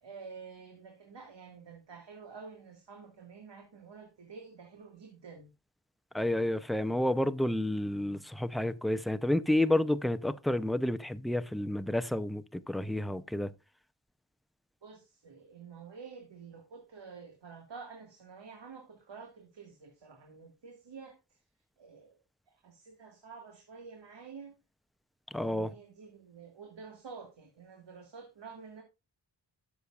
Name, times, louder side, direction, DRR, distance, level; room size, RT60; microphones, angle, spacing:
voice 1, 0.0-5.5 14.8-21.2 21.8-22.2 22.5-24.5 25.3-28.8, right 5 dB, 70° right, 1.9 m, -49 dB
voice 2, 6.1-13.5 25.3-25.7, left 1 dB, ahead, 0.5 m, -30 dB
13.0 x 7.0 x 2.4 m
wide cardioid pair, 70°, 44 cm